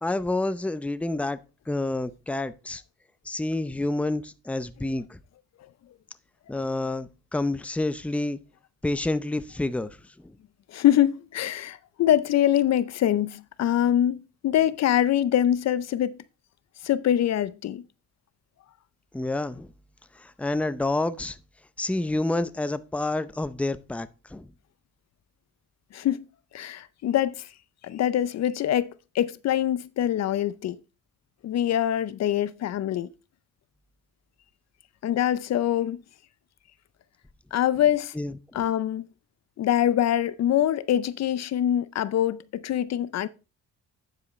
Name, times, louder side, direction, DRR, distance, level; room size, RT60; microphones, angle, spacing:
voice 1, 0.0-1.4 1.7-2.8 3.3-5.2 6.5-8.4 8.8-10.0 10.2-10.3 19.1-19.7 20.2-21.4 21.8-24.5 38.1-38.6, left 2 dB, 5° left, 0.6 m, -28 dB
voice 2, 10.7-16.2 16.8-17.8 25.9-26.2 26.5-27.5 27.8-30.8 31.4-33.1 35.0-36.0 37.5-38.1 38.5-39.1 39.6-43.3, left 11 dB, 60° left, 0.6 m, -24 dB
9.6 x 7.6 x 3.1 m
cardioid pair, 90°, 30 cm